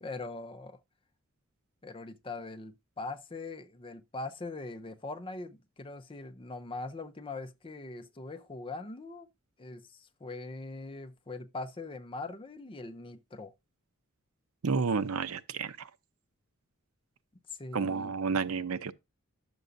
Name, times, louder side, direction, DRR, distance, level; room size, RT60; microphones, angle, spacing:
voice 1, 0.0-0.8 1.8-9.3 9.6-13.5 17.5-18.1, left 3 dB, 25° left, 0.5 m, -41 dB
voice 2, 14.6-15.9 17.7-18.9, right 5 dB, 85° right, 0.6 m, -31 dB
11.0 x 6.9 x 2.6 m
head